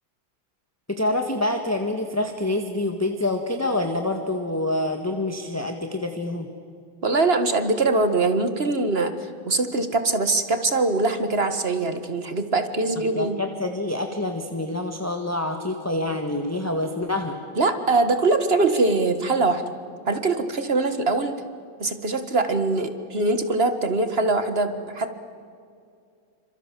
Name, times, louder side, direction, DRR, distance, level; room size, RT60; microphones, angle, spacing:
voice 1, 0.9-6.5 13.1-17.4, left 2 dB, 10° left, 4 dB, 1.5 m, -26 dB
voice 2, 7.0-13.4 17.6-19.6 20.1-21.4 21.8-25.1, right 3 dB, 30° right, 9 dB, 1.8 m, -22 dB
29.0 x 26.0 x 7.6 m, 2.4 s
omnidirectional pair, 2.2 m